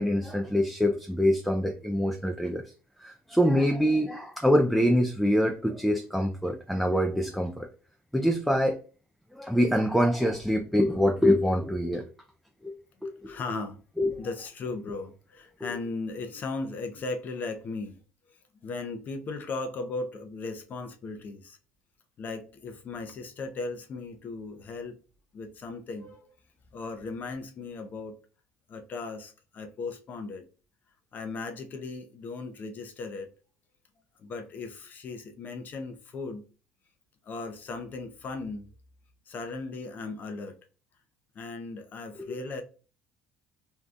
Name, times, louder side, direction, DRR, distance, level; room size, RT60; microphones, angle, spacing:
voice 1, 0.0-2.6 3.0-7.7 8.1-8.8 9.3-12.0 12.6-12.7 13.0-13.3 14.0-14.1 42.3-42.4, equal, ahead, 0.4 m, -25 dB
voice 2, 13.3-13.8 14.2-18.0 18.6-21.6 22.2-25.0 25.3-26.3 26.7-28.2 28.7-30.5 31.1-33.3 34.2-36.5 37.2-38.7 39.3-40.6 41.3-42.6, left 3 dB, 45° left, 0.6 m, -37 dB
2.7 x 2.2 x 3.5 m
supercardioid pair, 100°, 4 cm